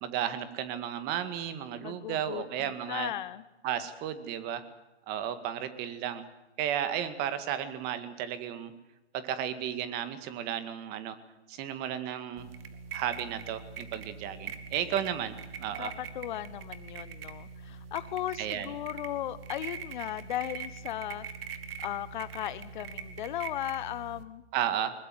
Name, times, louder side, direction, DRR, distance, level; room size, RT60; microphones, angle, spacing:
voice 1, 0.0-3.1 3.6-4.6 5.1-6.2 6.6-8.7 9.1-11.2 11.5-12.5 12.9-15.9 18.4-18.7 24.5-24.9, right 10 dB, 25° right, 11 dB, 2.0 m, -33 dB
voice 2, 1.8-3.4 15.8-21.3 21.8-24.4, left 13 dB, 45° left, 16 dB, 0.9 m, -36 dB
sound 1, 12.4-24.2, right 6 dB, 55° right, 2.4 m, -43 dB
21.5 x 21.0 x 7.8 m, 1.0 s
hypercardioid pair, 135°, 35 cm